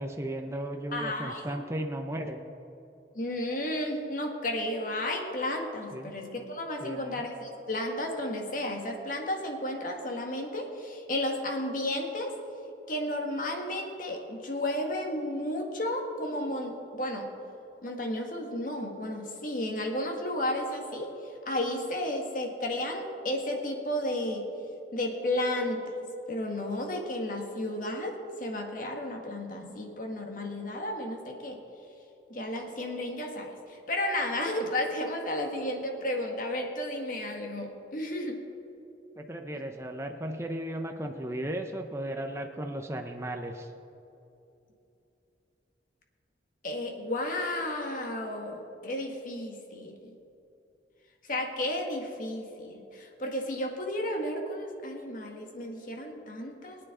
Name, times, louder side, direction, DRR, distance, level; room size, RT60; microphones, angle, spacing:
voice 1, 0.0-2.5 5.9-6.2 6.8-7.2 39.2-43.7, right 1 dB, 15° right, 4 dB, 0.6 m, -35 dB
voice 2, 0.9-1.5 3.2-12.3 12.9-17.3 17.8-21.1 21.5-24.5 24.9-25.8 26.3-31.6 32.3-38.4 46.6-49.9 51.3-56.8, left 1 dB, 50° left, 2 dB, 1.7 m, -33 dB
22.5 x 9.4 x 3.8 m, 2.8 s
head